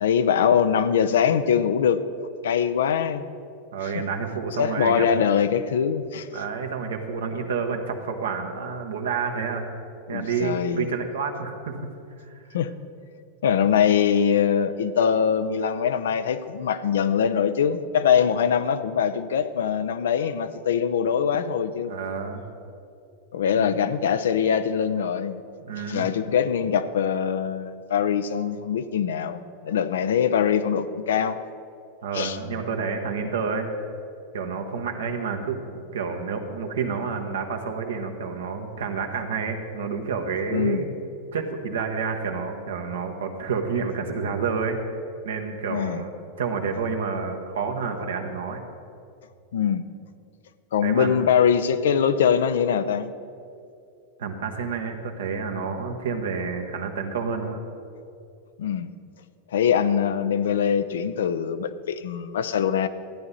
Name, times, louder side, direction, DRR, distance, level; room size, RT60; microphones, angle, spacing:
voice 1, 0.0-2.0 2.4-3.3 3.8-3.9 4.6-6.3 10.1-10.9 12.5-12.7 13.4-22.0 23.3-25.4 25.9-31.4 32.1-32.4 40.5-40.8 45.7-46.0 49.5-49.8 50.7-53.1 58.6-58.9 59.5-62.9, left 8 dB, 75° left, 12 dB, 0.5 m, -23 dB
voice 2, 3.7-5.1 6.3-9.7 10.1-11.8 12.2-12.4 21.8-22.4 23.5-23.7 25.6-26.2 32.0-33.7 34.3-40.9 41.3-44.8 45.2-46.1 46.4-48.6 50.8-51.2 54.2-57.6, right 5 dB, 80° right, 4 dB, 1.3 m, -29 dB
14.0 x 9.8 x 4.1 m, 2.5 s
hypercardioid pair, 100°, 0 cm